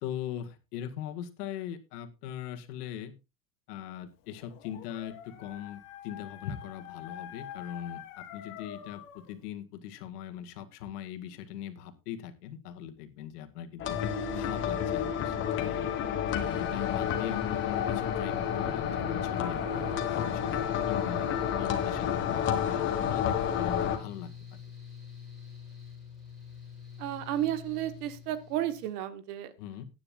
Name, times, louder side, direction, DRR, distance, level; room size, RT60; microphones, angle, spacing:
voice 1, 0.0-3.1 3.7-14.0 14.3-15.9 16.4-21.3 21.6-24.3 29.6-29.8, left 10 dB, 85° left, 8 dB, 2.1 m, -40 dB
Dog, 4.3-9.4, left 11 dB, 60° left, 2.3 m, -46 dB
sound 1, 13.8-24.0, left 8 dB, 25° left, 1.4 m, -30 dB
Mechanical fan, 16.3-28.8, left 7 dB, ahead, 6.1 m, -46 dB
voice 2, 27.0-29.5, right 12 dB, 80° right, 11 dB, 1.7 m, -32 dB
18.0 x 9.6 x 2.5 m, 0.26 s
cardioid pair, 180°, 46 cm